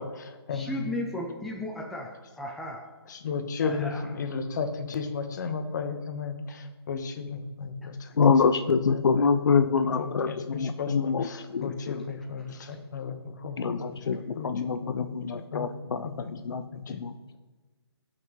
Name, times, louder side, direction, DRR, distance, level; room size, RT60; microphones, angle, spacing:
voice 1, 0.0-0.8 3.1-8.1 8.9-14.1 14.3-15.7 16.0-16.2 16.5-17.0, left 5 dB, 45° left, 7 dB, 1.1 m, -35 dB
voice 2, 0.5-2.9 3.6-4.0, left 1 dB, ahead, -1 dB, 0.4 m, -35 dB
voice 3, 8.1-12.0 13.6-16.6 16.9-17.4, left 5 dB, 65° left, 10 dB, 0.6 m, -26 dB
17.0 x 6.0 x 3.1 m, 1.3 s
hypercardioid pair, 155°, 14 cm